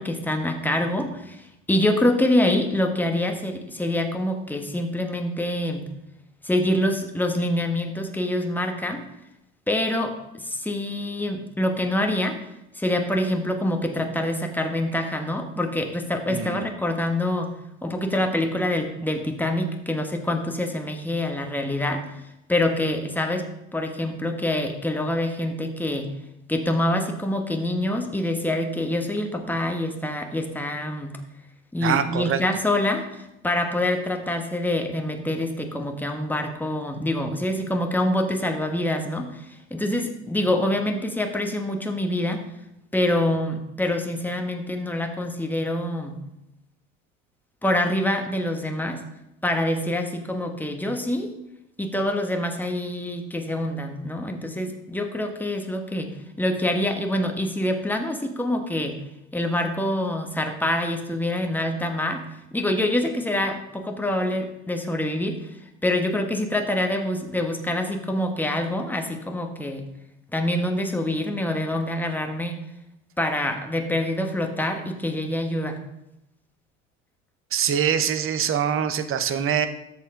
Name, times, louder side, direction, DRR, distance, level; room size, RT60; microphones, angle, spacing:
voice 1, 0.0-5.9 6.4-9.0 9.7-12.4 12.7-17.5 17.8-23.4 23.7-26.1 26.5-31.2 31.7-42.4 42.9-46.2 47.6-49.0 49.4-51.3 51.8-59.0 59.3-62.2 62.5-65.4 65.8-69.9 70.3-72.6 73.2-75.8, left 1 dB, 5° left, 4 dB, 1.3 m, -26 dB
voice 2, 16.3-16.6 31.8-32.4 77.5-79.7, right 8 dB, 35° right, 11 dB, 0.8 m, -24 dB
13.5 x 4.5 x 3.8 m, 0.87 s
hypercardioid pair, 75°, 38 cm